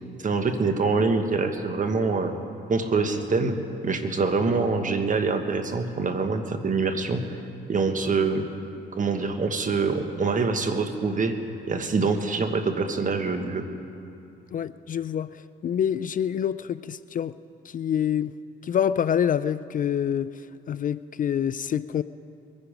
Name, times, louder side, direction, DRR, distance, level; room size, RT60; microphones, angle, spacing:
voice 1, 0.2-2.3 2.7-7.3 7.7-8.5 9.0-11.4 11.7-13.7, right 4 dB, 40° right, 7 dB, 1.4 m, -25 dB
voice 2, 14.5-17.4 17.6-18.3 18.6-22.0, left 9 dB, 45° left, 15 dB, 0.4 m, -26 dB
22.0 x 10.5 x 5.2 m, 2.6 s
cardioid pair, 90°, 20 cm